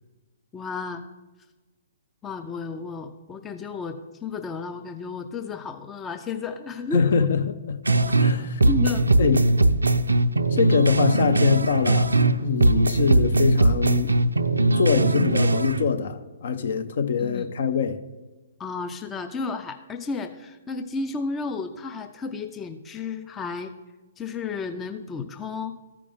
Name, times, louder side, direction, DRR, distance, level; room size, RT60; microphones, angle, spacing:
voice 1, 0.5-1.1 2.2-7.0 8.7-9.1 17.2-17.5 18.6-23.7 24.2-25.8, left 4 dB, 15° left, 0.5 m, -32 dB
voice 2, 6.9-7.4 7.7-7.8 8.2-8.6 9.2-9.5 10.5-12.1 12.4-14.5 14.8-18.0, left 6 dB, 55° left, 0.7 m, -24 dB
sound 1, 7.9-8.3 8.6-12.3 12.6-15.8, right 2 dB, 75° right, 0.5 m, -20 dB
14.0 x 5.0 x 3.5 m
figure-of-eight pair, 120°, 0 cm